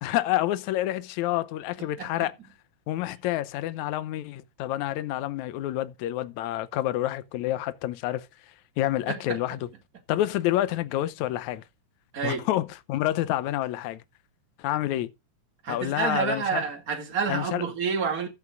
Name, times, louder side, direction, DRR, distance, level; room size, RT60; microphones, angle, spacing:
voice 1, 0.0-2.3 2.9-8.3 8.8-9.7 10.1-11.6 12.2-14.0 14.6-15.1 15.7-16.6 17.3-17.6, left 14 dB, 70° left, 1.9 m, -28 dB
voice 2, 1.8-2.3 9.1-9.4 12.1-12.5 15.6-18.3, right 6 dB, 30° right, 2.4 m, -29 dB
14.5 x 12.5 x 2.5 m
omnidirectional pair, 3.9 m